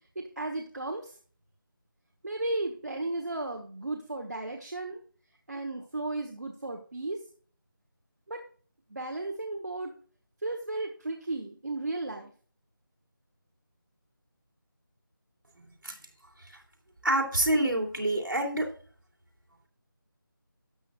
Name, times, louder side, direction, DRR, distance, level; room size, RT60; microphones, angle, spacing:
voice 1, 0.1-1.1 2.2-5.0 5.5-7.2 8.3-8.4 8.9-9.9 10.4-12.3, right 2 dB, 55° right, 2 dB, 1.2 m, -34 dB
voice 2, 17.0-18.7, right 1 dB, 70° right, 1 dB, 3.0 m, -26 dB
12.5 x 7.7 x 2.5 m, 0.43 s
figure-of-eight pair, 175°, 12 cm